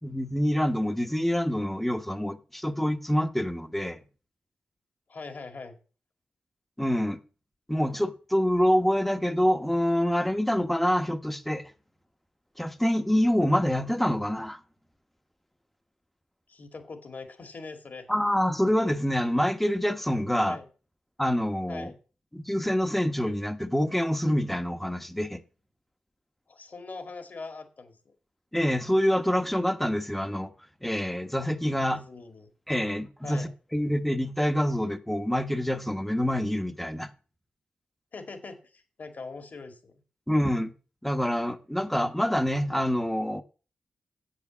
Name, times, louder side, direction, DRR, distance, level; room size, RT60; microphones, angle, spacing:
voice 1, 0.0-4.0 6.8-7.2 7.7-11.7 12.6-14.6 18.1-20.6 21.2-21.9 22.3-25.4 28.5-30.5 30.8-32.0 32.7-37.1 40.3-40.7 41.0-43.4, equal, 5° left, 1.1 m, -26 dB
voice 2, 5.1-5.8 16.5-18.1 20.4-20.7 21.7-22.0 26.5-28.1 31.9-32.5 33.2-33.5 38.1-40.0, left 4 dB, 50° left, 2.3 m, -42 dB
8.5 x 8.2 x 7.1 m
cardioid pair, 80°, 4 cm